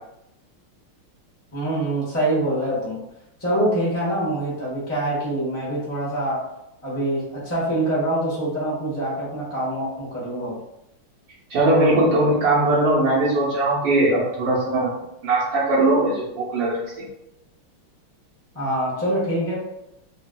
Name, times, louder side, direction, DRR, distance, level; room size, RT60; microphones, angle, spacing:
voice 1, 1.5-3.0 3.4-6.5 6.8-10.5 18.5-19.5, right 1 dB, 15° left, -8 dB, 0.5 m, -25 dB
voice 2, 11.5-14.9 15.2-16.7, right 2 dB, 70° right, -10 dB, 1.6 m, -20 dB
3.8 x 2.4 x 2.2 m, 0.85 s
omnidirectional pair, 2.3 m